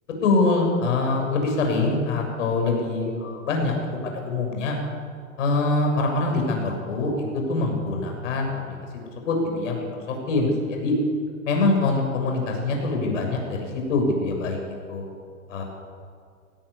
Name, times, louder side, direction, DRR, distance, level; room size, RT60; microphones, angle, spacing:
voice 1, 0.2-3.7 4.0-4.8 5.4-8.8 9.2-9.9 10.3-10.9 11.4-13.6 13.9-15.0 15.5-15.6, left 3 dB, 65° left, 2 dB, 7.2 m, -24 dB
19.0 x 17.5 x 8.4 m, 2.2 s
hypercardioid pair, 105°, 40 cm